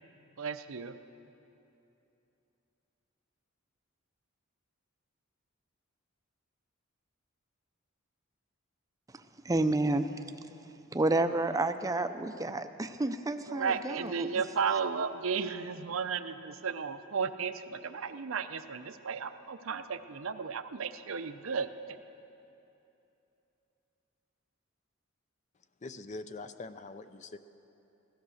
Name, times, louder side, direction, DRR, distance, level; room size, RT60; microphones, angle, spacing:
voice 1, 0.4-0.9 13.5-21.7, right 6 dB, 70° right, 10 dB, 0.6 m, -34 dB
voice 2, 9.1-10.1 10.9-14.3, right 2 dB, 15° right, 9 dB, 0.5 m, -30 dB
voice 3, 25.8-27.4, left 3 dB, 35° left, 11 dB, 0.5 m, -43 dB
16.5 x 13.5 x 6.4 m, 2.9 s
head